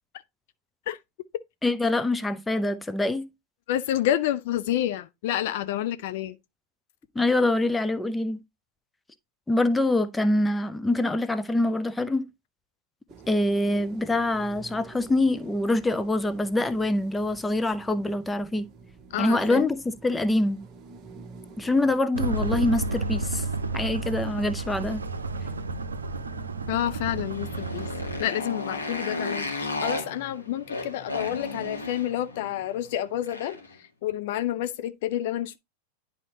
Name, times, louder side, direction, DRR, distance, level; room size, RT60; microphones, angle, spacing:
voice 1, 1.6-3.3 7.1-8.4 9.5-12.3 13.3-18.7 19.2-20.7 21.6-23.4 23.7-25.1, left 2 dB, 10° left, 0.6 m, -25 dB
voice 2, 3.7-6.4 19.1-19.6 26.7-27.9 28.2-33.6 34.0-35.6, left 12 dB, 50° left, 0.4 m, -29 dB
sound 1, 13.1-22.0, right 4 dB, 30° right, 1.1 m, -48 dB
sound 2, 22.1-28.2, right 3 dB, 70° right, 0.7 m, -31 dB
Motorcycle, 27.2-33.7, left 2 dB, 85° left, 2.0 m, -34 dB
10.5 x 4.2 x 2.8 m
figure-of-eight pair, 90°, 0 cm